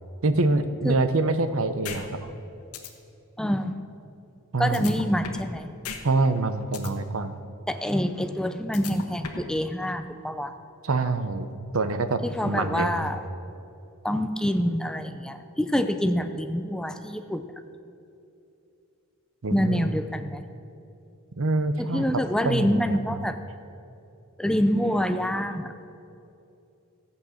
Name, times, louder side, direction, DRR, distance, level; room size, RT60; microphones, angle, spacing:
voice 1, 0.2-2.1 4.5-4.9 6.0-7.4 10.8-11.5 11.7-13.1 19.4-19.9 21.4-22.9, right 3 dB, 65° right, 11 dB, 0.8 m, -25 dB
sound 1, 1.8-2.0 2.4-2.5 2.7-2.9 4.7-5.5 5.8-6.0 6.4-6.9 8.7-9.5, left 6 dB, 85° left, 1.3 m, -36 dB
voice 2, 3.4-3.8 4.6-5.7 7.7-10.5 12.2-13.2 14.0-17.4 19.5-20.4 21.8-23.4 24.4-25.7, equal, 5° left, 8 dB, 0.5 m, -26 dB
13.5 x 8.4 x 6.4 m, 2.7 s
head